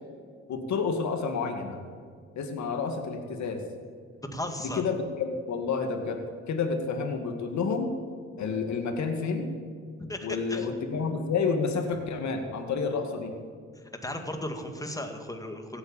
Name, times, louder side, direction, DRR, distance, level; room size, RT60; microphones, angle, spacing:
voice 1, 0.5-1.8 2.4-3.6 4.7-6.2 6.5-7.9 8.4-9.5 10.2-13.3, left 5 dB, 65° left, 5 dB, 2.2 m, -29 dB
voice 2, 4.3-4.8 10.0-10.7 14.0-15.8, left 1 dB, 10° left, 5 dB, 2.0 m, -35 dB
16.0 x 8.2 x 8.7 m, 2.1 s
cardioid pair, 90°, 30 cm